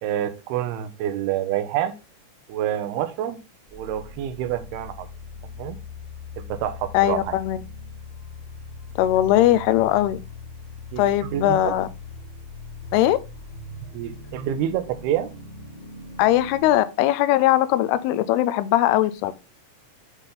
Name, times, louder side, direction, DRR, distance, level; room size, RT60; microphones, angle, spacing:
voice 1, 0.0-1.9 2.5-3.4 3.7-5.1 5.6-5.8 6.4-7.4 10.9-11.8 13.9-15.3, right 11 dB, 75° right, 2.7 m, -27 dB
sound 1, 3.7-16.7, left 3 dB, 40° right, 0.8 m, -40 dB
voice 2, 6.9-7.6 9.0-10.2 11.0-11.9 12.9-13.2 16.2-19.3, left 13 dB, 80° left, 2.4 m, -20 dB
8.0 x 4.2 x 3.7 m
omnidirectional pair, 4.9 m